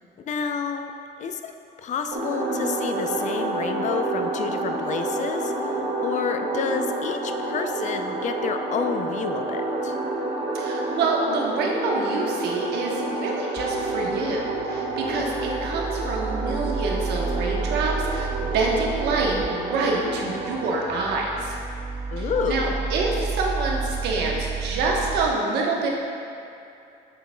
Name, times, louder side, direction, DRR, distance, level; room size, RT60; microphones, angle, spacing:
voice 1, 0.2-0.9 1.2-1.4 1.8-10.0 22.1-22.8, left 6 dB, 45° left, 7 dB, 0.5 m, -29 dB
sound 1, 2.1-20.7, right 2 dB, 40° right, 1.4 m, -29 dB
voice 2, 10.5-21.5 22.2-25.9, right 3 dB, 80° right, -2 dB, 1.1 m, -26 dB
sound 2, 13.6-25.3, right 5 dB, 15° right, 0.4 m, -32 dB
7.6 x 6.9 x 2.2 m, 2.6 s
cardioid pair, 110°, 17 cm